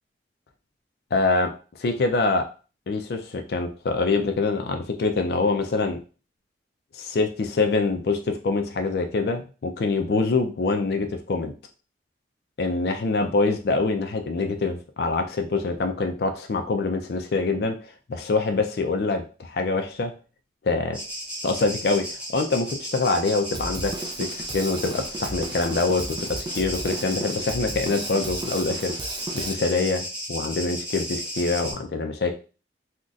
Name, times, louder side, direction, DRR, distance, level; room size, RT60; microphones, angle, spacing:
voice 1, 1.1-1.5 1.8-2.5 2.9-6.0 6.9-11.5 12.6-17.8 18.1-20.1 20.6-21.0 21.4-28.9 29.3-30.0 30.3-32.4, left 3 dB, 60° left, 6 dB, 0.4 m, -25 dB
sound 1, 20.9-31.7, equal, 5° right, 0.8 m, -34 dB
Drum kit, 23.5-29.5, right 2 dB, 25° right, 0.3 m, -35 dB
3.9 x 2.1 x 2.4 m, 0.35 s
head